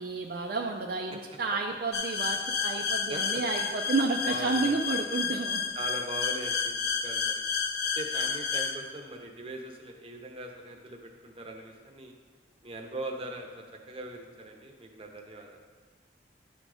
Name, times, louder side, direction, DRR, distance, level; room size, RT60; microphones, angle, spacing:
voice 1, 0.0-5.6, right 3 dB, 55° right, 2 dB, 0.4 m, -31 dB
sound 1, 1.9-8.7, left 6 dB, 55° left, 0.7 m, -31 dB
voice 2, 2.7-3.2 4.2-4.8 5.7-6.7 7.0-7.4 8.0-12.1 12.6-15.6, right 1 dB, 30° right, 2 dB, 0.8 m, -40 dB
11.0 x 3.8 x 4.8 m, 1.5 s
head